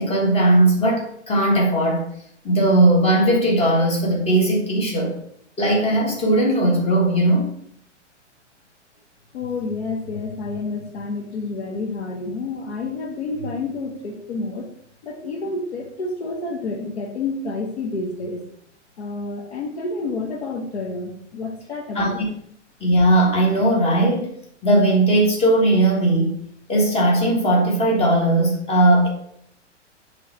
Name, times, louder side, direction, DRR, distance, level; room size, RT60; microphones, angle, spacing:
voice 1, 0.0-2.0 2.4-5.2 5.6-7.5 21.9-22.1 22.8-24.3 24.6-26.3 26.7-29.1, right 1 dB, 15° left, -1 dB, 1.5 m, -18 dB
voice 2, 9.3-14.7 15.0-18.4 19.0-22.2, left 3 dB, 60° left, 3 dB, 1.0 m, -29 dB
7.3 x 3.3 x 4.3 m, 0.69 s
figure-of-eight pair, 110°, 36 cm